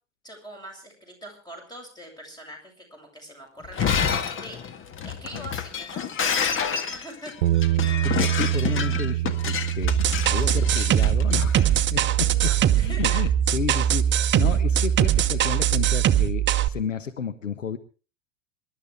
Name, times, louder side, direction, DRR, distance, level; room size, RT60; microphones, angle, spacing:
voice 1, 0.2-4.8 5.0-7.3 12.1-13.2, right 1 dB, 10° left, 3 dB, 7.5 m, -43 dB
Shatter, 3.6-11.7, left 7 dB, 35° left, 1.8 m, -28 dB
sound 1, 7.4-13.7, right 15 dB, 65° right, 1.0 m, -27 dB
voice 2, 8.0-12.5 12.8-17.8, left 7 dB, 85° left, 11 dB, 1.3 m, -32 dB
sound 2, 9.8-16.7, right 10 dB, 30° right, 0.9 m, -21 dB
25.5 x 12.0 x 3.6 m, 0.36 s
hypercardioid pair, 85°, 37 cm